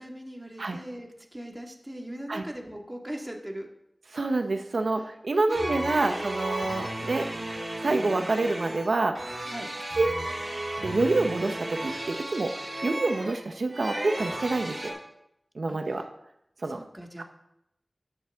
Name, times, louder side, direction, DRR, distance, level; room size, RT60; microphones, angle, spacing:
voice 1, 0.0-3.7 4.8-5.1 5.5-6.2 9.5-9.7 15.7-16.0 16.6-17.2, right 1 dB, 20° right, 2 dB, 1.8 m, -40 dB
voice 2, 4.1-7.3 7.8-9.3 10.0-10.1 10.8-12.5 12.8-15.0 15.6-16.0 16.6-16.8, right 2 dB, 90° right, 6 dB, 0.8 m, -27 dB
sound 1, 5.5-14.9, right 1 dB, 65° right, 3.0 m, -34 dB
13.5 x 8.9 x 3.6 m, 0.79 s
wide cardioid pair, 50°, 0 cm